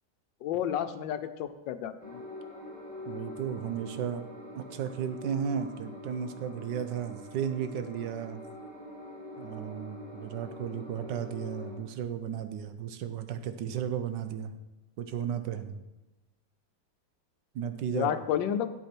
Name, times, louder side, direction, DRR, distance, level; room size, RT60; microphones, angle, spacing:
voice 1, 0.4-2.2 17.9-18.7, left 10 dB, 85° left, 11 dB, 1.4 m, -31 dB
sound 1, 2.0-11.8, left 1 dB, 5° left, 2.1 m, -45 dB
voice 2, 3.1-4.2 4.5-8.4 9.4-14.5 15.0-15.8 17.5-18.1, right 8 dB, 75° right, 10 dB, 1.3 m, -34 dB
8.2 x 7.9 x 4.4 m, 1.1 s
omnidirectional pair, 2.0 m